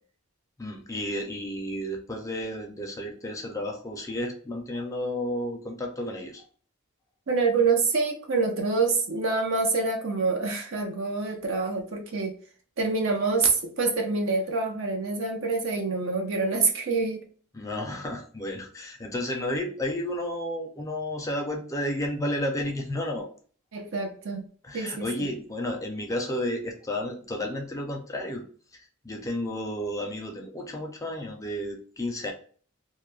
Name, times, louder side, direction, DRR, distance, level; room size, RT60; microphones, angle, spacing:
voice 1, 0.6-6.4 17.5-23.3 24.6-28.4 28.7-32.3, left 1 dB, 15° left, 2 dB, 0.5 m, -32 dB
voice 2, 7.3-12.3 12.8-17.2 23.7-24.5 24.7-25.3, right 4 dB, 65° right, 3 dB, 0.7 m, -26 dB
2.3 x 2.1 x 3.1 m, 0.43 s
head